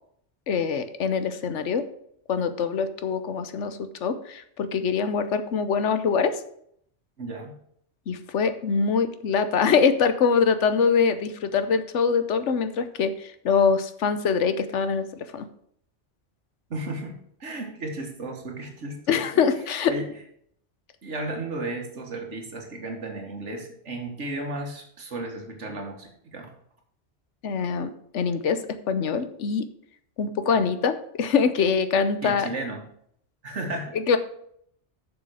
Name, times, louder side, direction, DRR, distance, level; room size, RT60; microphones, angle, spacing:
voice 1, 0.5-1.8 2.3-6.4 8.1-15.5 19.1-19.9 27.4-28.6 28.9-29.6 30.2-32.5 33.9-34.2, left 6 dB, 80° left, 11 dB, 1.1 m, -24 dB
voice 2, 7.2-7.6 16.7-19.4 19.8-20.1 21.0-26.5 32.2-32.8 33.4-33.9, right 2 dB, 80° right, 2 dB, 2.0 m, -34 dB
7.0 x 6.4 x 6.4 m, 0.69 s
omnidirectional pair, 1.2 m